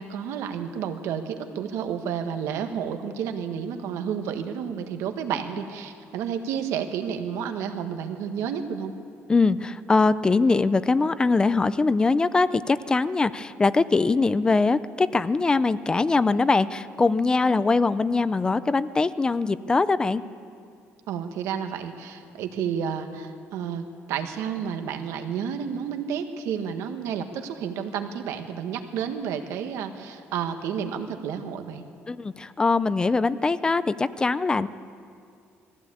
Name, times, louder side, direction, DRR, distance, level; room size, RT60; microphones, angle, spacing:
voice 1, 0.0-8.9 21.1-31.8, right 7 dB, 85° right, 6 dB, 1.5 m, -31 dB
voice 2, 9.3-20.2 32.1-34.7, left 3 dB, 15° left, 15 dB, 0.4 m, -22 dB
20.5 x 15.0 x 8.5 m, 2.4 s
cardioid pair, 155°, 5 cm